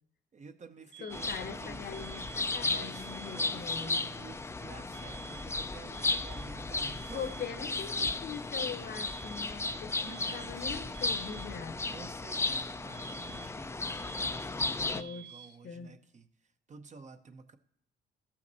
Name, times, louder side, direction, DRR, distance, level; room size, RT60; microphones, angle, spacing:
voice 1, 0.3-1.8 2.6-7.6 8.0-8.1 10.2-11.0 11.9-17.6, right 5 dB, 35° right, 9 dB, 0.8 m, -51 dB
sound 1, 0.9-1.6 1.9-2.6 2.9-3.6 4.9-5.6 5.9-6.6 6.9-7.6 8.9-9.6 9.9-10.6 10.9-11.6 12.9-13.6 13.9-14.6 14.9-15.6, right 11 dB, 75° right, 0.6 m, -50 dB
voice 2, 1.0-3.9 7.1-11.8 14.9-15.9, left 6 dB, 60° left, 10 dB, 1.0 m, -42 dB
sound 2, 1.1-15.0, left 3 dB, 15° left, 0.4 m, -35 dB
13.5 x 5.9 x 4.0 m, 0.68 s
cardioid pair, 90°, 20 cm